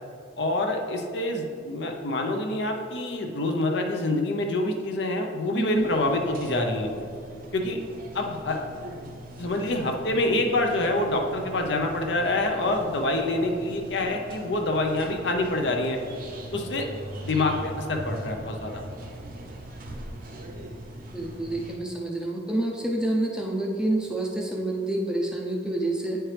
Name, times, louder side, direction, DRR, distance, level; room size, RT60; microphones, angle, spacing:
voice 1, 0.4-6.9 7.5-7.8 8.1-8.6 9.4-16.0 16.5-16.9 17.2-18.8, left 2 dB, 60° left, 3 dB, 0.7 m, -26 dB
voice 2, 5.5-5.9 21.1-26.2, right 1 dB, 5° right, -1 dB, 0.5 m, -28 dB
sound 1, 5.7-21.8, right 1 dB, 45° right, 0.6 m, -41 dB
8.9 x 4.5 x 3.3 m, 2.3 s
head